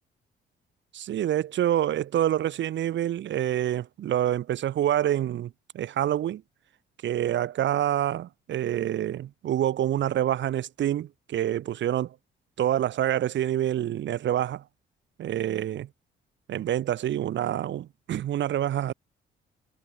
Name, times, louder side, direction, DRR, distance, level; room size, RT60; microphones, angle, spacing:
voice 1, 0.9-6.4 7.0-12.1 12.6-14.6 15.2-15.9 16.5-18.9, right 11 dB, 65° right, 1.3 m, -27 dB
cardioid pair, 90°, 20 cm